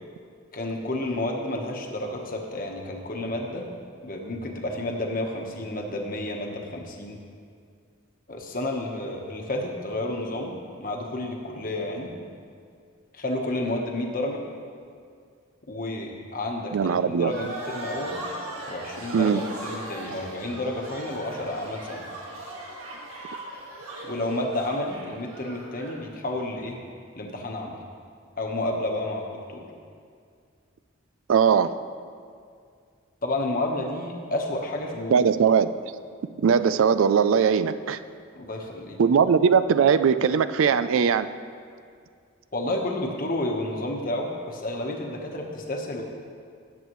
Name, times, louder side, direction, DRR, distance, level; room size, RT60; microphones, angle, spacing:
voice 1, 0.5-3.7 4.0-7.2 8.3-12.1 13.1-14.4 15.7-18.2 18.7-22.1 24.0-26.8 27.1-27.8 28.4-29.6 33.2-35.3 38.4-39.0 42.5-46.0, left 1 dB, 40° left, 1 dB, 1.1 m, -31 dB
voice 2, 16.7-17.3 19.1-19.4 31.3-31.8 35.1-35.7 36.4-38.0 39.0-41.3, right 6 dB, 70° right, 13 dB, 0.4 m, -20 dB
sound 1, 17.3-26.0, right 1 dB, 90° right, 1.7 m, -39 dB
17.5 x 8.0 x 3.1 m, 2.2 s
head